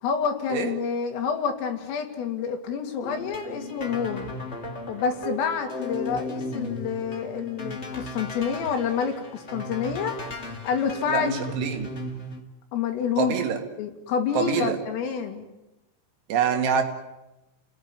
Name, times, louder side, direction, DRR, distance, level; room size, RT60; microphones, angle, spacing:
voice 1, 0.0-4.3 4.9-10.2 10.6-11.3 12.7-13.3 13.8-15.5, left 7 dB, 90° left, 5.3 m, -28 dB
sound 1, 3.0-12.4, left 1 dB, 35° left, 1.0 m, -36 dB
voice 2, 11.1-11.9 13.2-13.6 14.3-14.8 16.3-16.8, right 7 dB, 70° right, 4.6 m, -25 dB
30.0 x 18.5 x 9.7 m
omnidirectional pair, 5.7 m